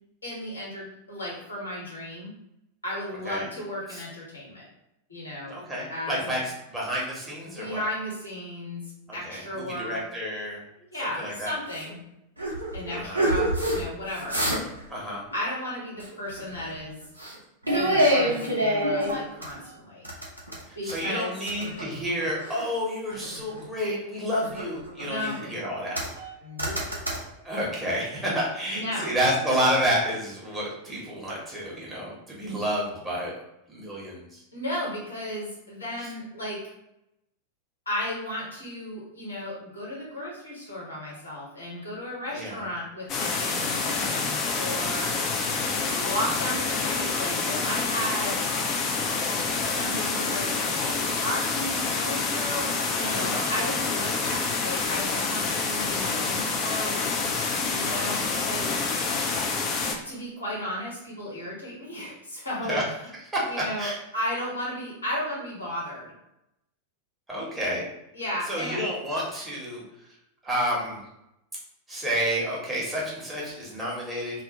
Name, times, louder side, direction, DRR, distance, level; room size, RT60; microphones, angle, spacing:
voice 1, 0.2-2.3 2.8-4.7 5.1-5.5 5.9-6.4 7.4-8.8 9.1-10.0 10.9-12.0 12.7-14.4 15.3-17.0 17.7-20.1 20.7-21.4 25.0-25.4 26.4-26.7 28.7-29.1 34.5-36.6 37.8-45.2 45.9-48.4 49.6-57.1 57.8-58.8 60.0-62.8 63.4-66.1 68.1-68.8, left 1 dB, 80° left, -5 dB, 1.1 m, -34 dB
voice 2, 5.5-6.4 6.7-7.8 9.2-10.6 11.2-11.5 12.9-13.2 14.9-15.2 20.7-26.0 27.4-33.3 33.7-34.4 42.3-42.6 53.0-53.5 57.7-58.1 62.7-62.8 63.3-63.5 63.8-64.0 67.3-67.8 68.5-69.8 70.4-71.0 71.9-74.4, equal, 10° right, -5 dB, 0.9 m, -30 dB
sound 1, 11.7-11.9 12.4-13.8 14.1-14.8 15.1-15.3 16.0-16.7 17.2-17.4 17.6-19.6 20.0-21.1 21.5-22.7 23.1-23.9 24.3-25.4 25.9-26.3 26.6-27.2, equal, 85° right, 0.6 m, -26 dB
sound 2, 43.1-60.0, left 4 dB, 30° left, 0.4 m, -27 dB
2.3 x 2.0 x 2.8 m, 0.84 s
figure-of-eight pair, 90°, 0 cm